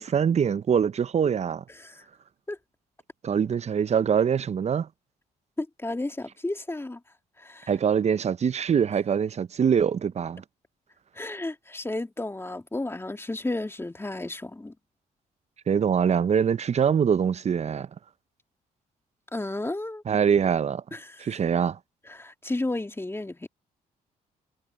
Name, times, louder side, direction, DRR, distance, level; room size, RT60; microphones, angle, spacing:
voice 1, 0.0-1.6 3.2-4.9 7.7-10.4 15.7-17.9 20.1-20.8 21.2-21.8, right 7 dB, 45° right, 0.7 m, -24 dB
voice 2, 5.6-7.0 7.4-7.7 11.1-14.7 19.3-20.0 20.9-21.3 22.1-23.5, left 2 dB, 15° left, 3.0 m, -33 dB
supercardioid pair, 65°, 16 cm